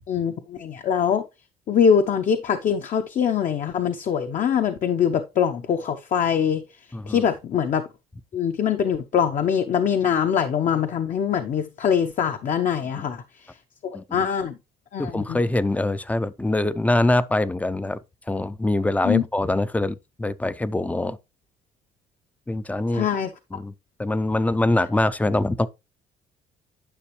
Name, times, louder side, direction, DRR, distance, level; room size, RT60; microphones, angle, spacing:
voice 1, 0.1-1.2 1.7-6.6 7.1-7.8 8.3-13.5 13.8-14.6 14.9-15.4 19.0-19.2 22.9-23.3, left 7 dB, 50° left, 0.8 m, -23 dB
voice 2, 6.9-7.2 13.0-13.1 13.9-14.3 15.0-18.0 18.3-21.2 22.5-23.1 23.5-23.7 24.0-25.7, left 2 dB, 10° left, 0.5 m, -24 dB
10.0 x 6.0 x 3.1 m
cardioid pair, 110°, 17 cm